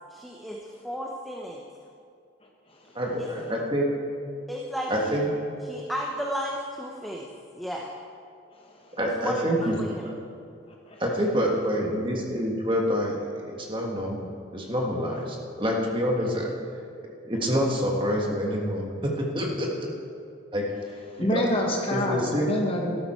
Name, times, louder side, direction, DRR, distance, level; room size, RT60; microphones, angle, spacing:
voice 1, 0.1-0.6 0.8-1.6 3.2-3.3 4.5-5.2 5.6-7.3 7.6-7.9 9.2-10.1, equal, ahead, -2 dB, 0.7 m, -33 dB
voice 2, 2.9-3.9 4.9-5.3 9.0-9.7 11.0-16.5 17.2-19.9 20.5-20.7 21.2-21.5 21.9-22.5, equal, 25° right, -1 dB, 1.6 m, -27 dB
voice 3, 21.2-22.9, equal, 25° left, 0 dB, 1.4 m, -26 dB
13.0 x 12.5 x 4.4 m, 2.4 s
head